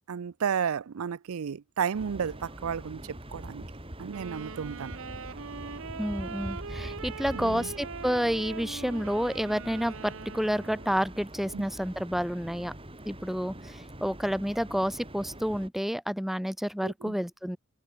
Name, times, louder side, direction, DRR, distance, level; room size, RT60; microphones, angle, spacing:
voice 1, 0.1-3.6 4.0-4.9 7.3-7.7 11.5-11.7 16.8-17.2, right 7 dB, 80° right, 0.5 m, -33 dB
sound 1, 1.9-15.7, right 1 dB, 25° right, 7.6 m, -43 dB
Wind instrument woodwind instrument, 4.1-11.3, right 5 dB, 65° right, 0.9 m, -42 dB
voice 2, 6.0-12.7 13.0-17.6, equal, ahead, 1.3 m, -30 dB
head